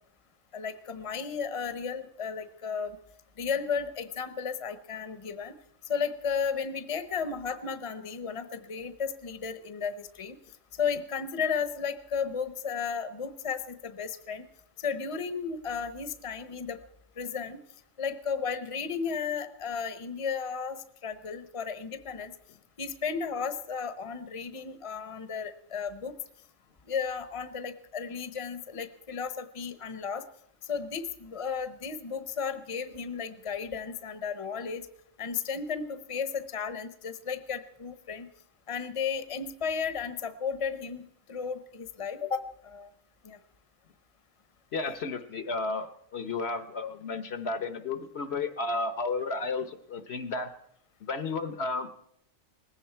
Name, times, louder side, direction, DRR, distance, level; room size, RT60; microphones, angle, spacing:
voice 1, 0.5-3.0 3.4-5.5 5.8-10.4 10.8-14.5 14.8-16.8 17.2-17.6 18.0-22.3 22.8-26.1 26.9-30.2 30.6-34.9 35.2-38.3 38.7-42.9 43.2-43.4, left 6 dB, 30° left, 11 dB, 0.9 m, -34 dB
voice 2, 44.7-50.5 51.0-51.9, left 3 dB, 60° left, 11 dB, 1.1 m, -33 dB
19.5 x 15.5 x 4.5 m, 0.72 s
omnidirectional pair, 1.3 m